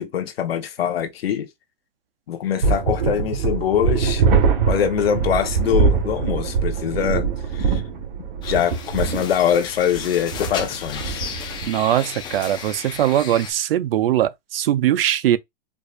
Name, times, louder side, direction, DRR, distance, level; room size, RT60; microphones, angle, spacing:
voice 1, 0.0-1.5 2.3-4.2 4.7-7.3 7.5-7.8 8.4-11.2, left 9 dB, 85° left, 1.0 m, -23 dB
sound 1, 2.6-11.6, right 5 dB, 60° right, 1.6 m, -22 dB
sound 2, 8.4-13.5, left 7 dB, 15° left, 0.5 m, -34 dB
voice 2, 11.7-15.4, right 12 dB, 75° right, 0.7 m, -20 dB
4.8 x 2.6 x 2.4 m
hypercardioid pair, 145°, 29 cm